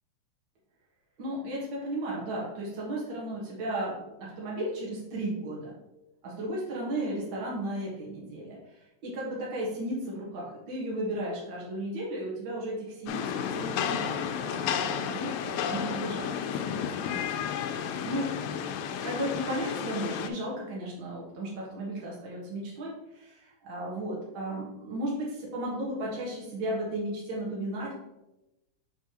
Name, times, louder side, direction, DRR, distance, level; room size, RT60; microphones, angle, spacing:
voice 1, 1.2-5.8 6.2-16.3 16.6-17.2 18.0-18.3 19.0-27.9, right 1 dB, 55° right, -5 dB, 1.5 m, -35 dB
Rain, 13.1-20.3, left 8 dB, 90° left, 2.3 m, -32 dB
6.1 x 5.4 x 2.9 m, 0.95 s
omnidirectional pair, 4.0 m